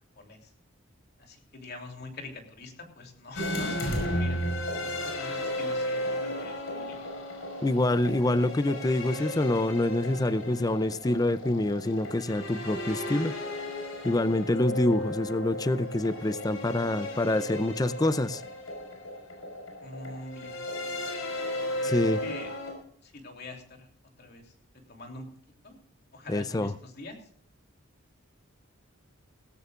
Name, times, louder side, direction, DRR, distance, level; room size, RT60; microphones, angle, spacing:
voice 1, 0.2-0.5 1.2-4.4 5.0-7.1 14.3-14.6 19.8-20.7 21.8-21.9 22.2-22.5 23.0-23.9 24.2-24.5 24.9-25.3 25.6-25.8 26.1-27.2, left 2 dB, 50° left, 2 dB, 3.1 m, -44 dB
sound 1, 3.3-22.7, left 1 dB, 80° left, 5.2 m, -34 dB
voice 2, 7.6-13.3 14.0-18.4 21.8-22.2 26.3-26.7, left 1 dB, 20° left, 14 dB, 0.5 m, -26 dB
18.5 x 16.0 x 2.5 m, 0.63 s
head